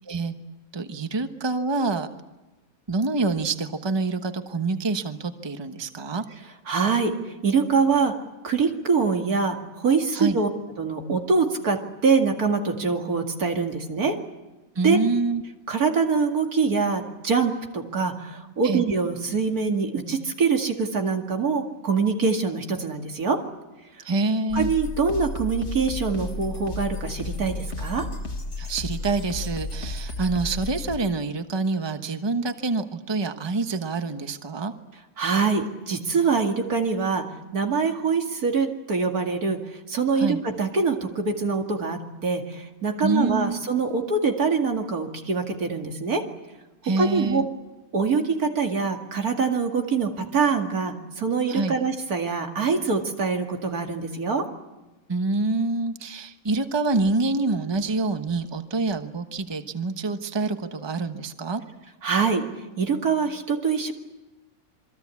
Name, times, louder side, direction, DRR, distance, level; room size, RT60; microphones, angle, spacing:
voice 1, 0.7-2.1 2.9-6.2 10.1-10.4 14.7-15.4 18.6-18.8 24.0-24.7 28.6-34.7 40.1-40.4 43.0-43.6 46.8-47.5 51.5-51.8 55.1-61.6, right 3 dB, 20° right, 8 dB, 1.1 m, -26 dB
voice 2, 6.7-7.2 7.4-8.1 8.4-10.5 10.8-14.2 14.8-15.0 15.7-23.4 24.5-28.1 35.2-37.2 37.5-39.6 39.9-46.2 47.0-47.4 47.9-54.4 62.0-62.4 62.8-63.9, right 5 dB, 85° right, 3 dB, 2.8 m, -24 dB
sound 1, 24.5-31.0, left 3 dB, 50° left, 2.0 m, -33 dB
27.5 x 23.0 x 8.4 m, 1.1 s
omnidirectional pair, 1.5 m